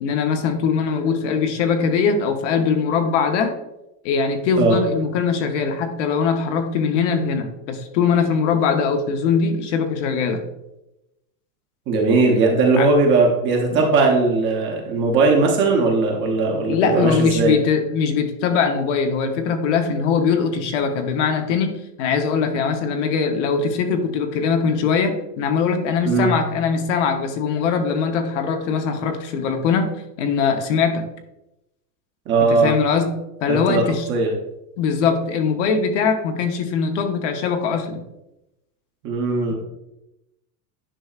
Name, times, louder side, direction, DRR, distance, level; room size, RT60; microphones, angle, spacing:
voice 1, 0.0-3.6 4.0-10.4 12.8-12.9 16.7-29.9 30.2-31.0 32.5-33.1 33.4-34.1 34.8-38.0 39.5-39.6, left 5 dB, 50° left, 6 dB, 0.9 m, -21 dB
voice 2, 11.9-17.6 26.0-26.4 32.3-32.7 33.5-34.3 39.0-39.5, right 3 dB, 25° right, 1 dB, 0.7 m, -18 dB
10.0 x 5.5 x 2.4 m, 0.90 s
supercardioid pair, 170°, 48 cm